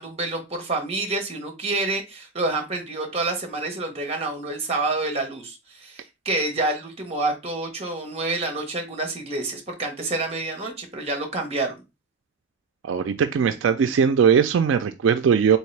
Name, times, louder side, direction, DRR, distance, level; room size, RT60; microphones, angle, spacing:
voice 1, 0.0-11.7, right 2 dB, 30° right, 0.9 m, -28 dB
voice 2, 12.8-15.6, right 7 dB, 75° right, 0.3 m, -20 dB
3.7 x 2.9 x 3.2 m
head